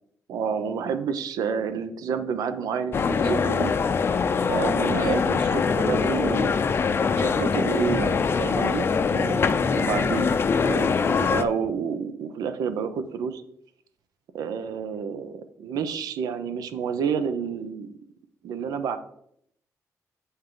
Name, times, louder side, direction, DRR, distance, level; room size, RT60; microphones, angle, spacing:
voice 1, 0.3-3.7 4.4-6.6 7.1-10.4 10.6-13.4 14.3-17.9 18.4-19.0, right 6 dB, 85° right, 10 dB, 0.7 m, -29 dB
sound 1, 2.9-11.4, left 5 dB, 40° left, 0.5 m, -23 dB
8.1 x 5.5 x 3.8 m, 0.71 s
cardioid pair, 130°, 6 cm